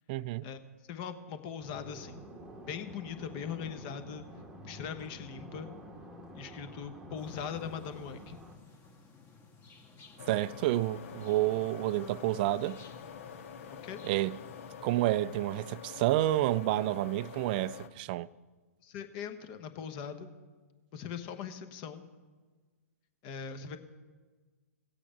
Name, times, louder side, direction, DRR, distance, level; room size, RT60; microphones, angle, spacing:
voice 1, 0.1-0.5 10.3-12.8 14.0-14.4 14.8-18.3, right 15 dB, 40° right, 0.3 m, -29 dB
voice 2, 0.9-2.2 2.7-4.2 4.6-5.7 6.3-8.4 13.7-14.0 18.8-20.3 20.9-22.0 23.2-23.8, left 7 dB, 35° left, 1.1 m, -40 dB
sound 1, 1.6-8.6, equal, 5° right, 1.1 m, -49 dB
sound 2, 7.2-14.7, left 3 dB, 20° left, 1.4 m, -57 dB
sound 3, 10.2-17.9, left 7 dB, 55° left, 0.8 m, -46 dB
16.5 x 8.3 x 5.1 m
hypercardioid pair, 120°, 8 cm